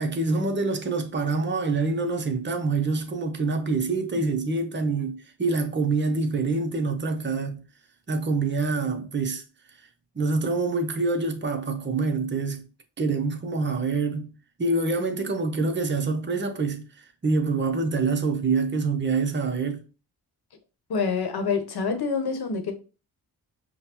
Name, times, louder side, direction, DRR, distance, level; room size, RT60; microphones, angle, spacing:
voice 1, 0.0-7.7 8.1-9.4 10.1-12.7 13.0-14.3 14.6-19.8, right 3 dB, 25° right, 0.8 m, -26 dB
voice 2, 20.9-22.7, left 5 dB, 60° left, 1.0 m, -26 dB
5.1 x 2.2 x 3.0 m
cardioid pair, 55°, 42 cm